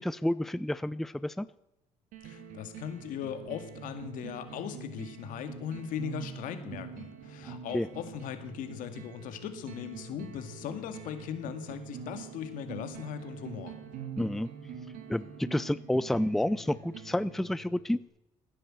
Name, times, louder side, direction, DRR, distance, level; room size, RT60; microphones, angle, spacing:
voice 1, 0.0-1.5 7.4-7.9 14.2-14.5 15.1-18.0, left 1 dB, ahead, 16 dB, 0.5 m, -30 dB
sound 1, 2.1-18.0, right 6 dB, 85° right, 2.4 m, -45 dB
voice 2, 2.2-13.8, left 9 dB, 80° left, 8 dB, 2.1 m, -39 dB
16.0 x 10.0 x 7.7 m, 0.87 s
cardioid pair, 95°, 14 cm